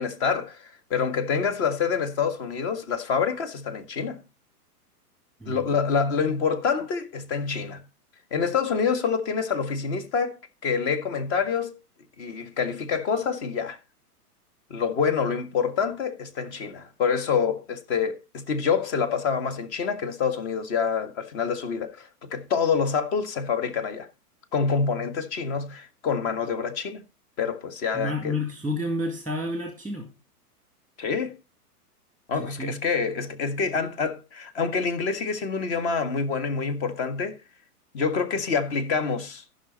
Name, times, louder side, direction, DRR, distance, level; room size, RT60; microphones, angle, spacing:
voice 1, 0.0-4.2 5.5-7.8 8.3-11.8 12.2-13.8 14.7-24.1 24.5-27.0 27.4-28.4 31.0-31.3 32.3-37.4 37.9-39.4, left 6 dB, 45° left, 1.7 m, -27 dB
voice 2, 27.9-30.1 32.4-32.8, left 1 dB, 5° left, 2.1 m, -30 dB
15.0 x 5.8 x 4.0 m
hypercardioid pair, 125°, 47 cm